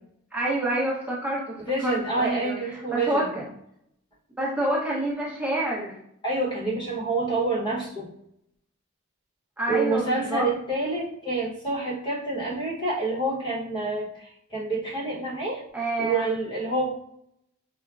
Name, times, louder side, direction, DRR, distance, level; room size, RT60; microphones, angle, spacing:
voice 1, 0.3-3.4 4.4-5.9 9.6-10.5 15.7-16.3, right 1 dB, 10° right, -6 dB, 0.7 m, -28 dB
voice 2, 1.7-3.3 6.2-8.1 9.7-15.6 16.0-16.9, right 2 dB, 25° left, -5 dB, 0.9 m, -27 dB
4.6 x 2.1 x 2.4 m, 0.74 s
head